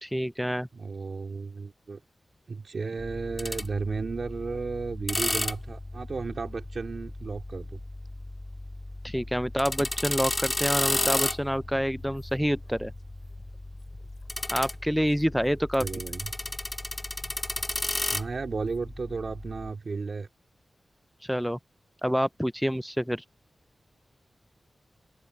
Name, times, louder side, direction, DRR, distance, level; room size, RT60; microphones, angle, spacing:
voice 1, 0.0-0.7 9.0-12.9 14.5-15.9 21.2-21.6 22.0-23.2, equal, ahead, 0.3 m, -27 dB
voice 2, 0.7-2.0 2.5-7.8 15.8-16.3 18.1-20.3, right 4 dB, 60° right, 2.7 m, -34 dB
sound 1, 3.0-19.7, left 1 dB, 20° left, 2.0 m, -34 dB
sound 2, 11.5-18.9, left 5 dB, 80° left, 7.1 m, -56 dB
open air
wide cardioid pair, 130°, 0 cm